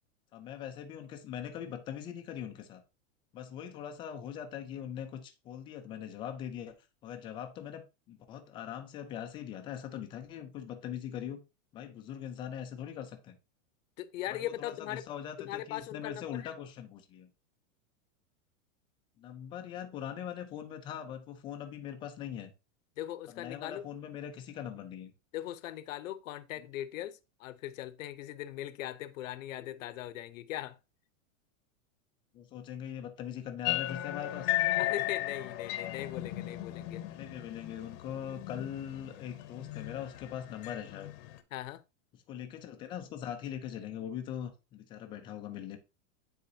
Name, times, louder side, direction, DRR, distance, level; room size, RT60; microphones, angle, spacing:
voice 1, 0.3-2.8 3.3-6.8 7.0-11.4 11.7-13.4 14.3-17.3 19.2-22.5 23.3-25.1 32.3-34.7 37.0-41.1 42.3-45.8, left 9 dB, 15° left, 0.3 m, -41 dB
voice 2, 14.0-15.0 15.4-16.5 23.0-23.8 25.3-30.8 34.8-37.0 41.5-41.8, left 13 dB, 80° left, 0.7 m, -40 dB
sound 1, 33.6-41.4, left 16 dB, 40° left, 0.8 m, -36 dB
9.4 x 4.1 x 2.7 m
supercardioid pair, 155°, 39 cm